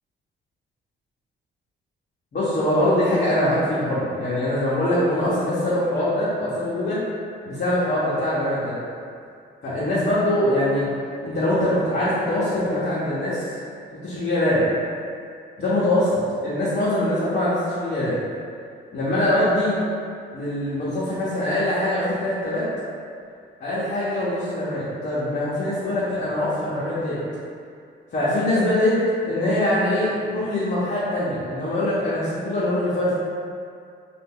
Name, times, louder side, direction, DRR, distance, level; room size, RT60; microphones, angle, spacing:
voice 1, 2.3-7.0 7.4-8.8 9.6-10.9 11.2-13.5 14.0-14.7 15.6-18.2 18.9-19.8 20.3-22.7 23.6-27.2 28.1-29.0 29.2-33.1, left 1 dB, 50° left, -10 dB, 0.8 m, -23 dB
2.5 x 2.3 x 3.6 m, 2.3 s
cardioid pair, 90°, 20 cm